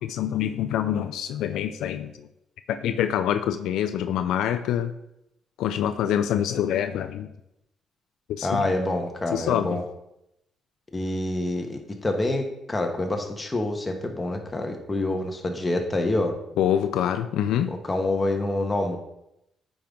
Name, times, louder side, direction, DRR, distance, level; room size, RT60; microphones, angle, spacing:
voice 1, 0.0-2.3 2.7-4.9 5.6-7.3 8.3-8.7 9.3-9.8 16.6-17.8, left 10 dB, 85° left, 9 dB, 0.4 m, -26 dB
voice 2, 8.4-9.8 10.9-16.3 17.7-19.0, left 2 dB, 20° left, 3 dB, 1.2 m, -27 dB
8.8 x 5.3 x 3.7 m, 0.84 s
cardioid pair, 90°, 0 cm